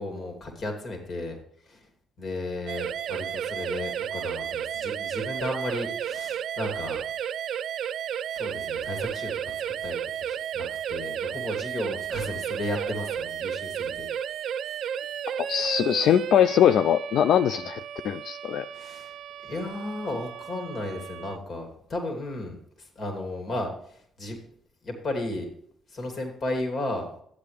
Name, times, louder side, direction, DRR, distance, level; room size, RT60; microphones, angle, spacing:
voice 1, 0.0-1.4 1.7-1.8 2.2-7.0 8.3-9.5 9.8-14.1 15.6-15.7 18.7-19.1 19.4-24.4 24.8-25.5 25.9-27.1, left 2 dB, 55° left, 3 dB, 2.7 m, -34 dB
sound 1, 2.7-21.4, right 9 dB, 70° right, 0.4 m, -33 dB
voice 2, 15.4-18.7, left 9 dB, 70° left, 12 dB, 0.3 m, -22 dB
12.0 x 8.2 x 3.4 m, 0.65 s
supercardioid pair, 60°, 0 cm